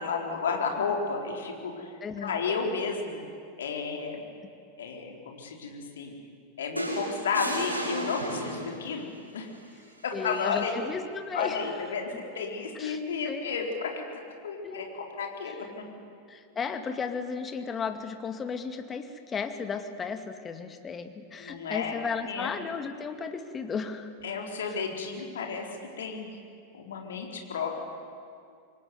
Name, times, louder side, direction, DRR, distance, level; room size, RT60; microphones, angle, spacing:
voice 1, 0.0-1.9 2.2-3.2 3.6-4.3 4.8-6.1 6.6-9.5 10.0-10.8 11.3-12.1 12.3-15.8 21.4-22.0 22.3-22.5 24.2-26.3 26.7-27.8, left 5 dB, 65° left, 2 dB, 4.2 m, -32 dB
voice 2, 2.0-2.4 10.1-11.6 12.8-13.0 13.2-13.4 14.6-14.9 16.3-24.1, left 5 dB, 20° left, 7 dB, 2.2 m, -34 dB
sound 1, 6.8-8.9 10.3-10.5, equal, 90° right, 5.7 m, -33 dB
26.0 x 23.0 x 9.6 m, 2.4 s
figure-of-eight pair, 90°, 0 cm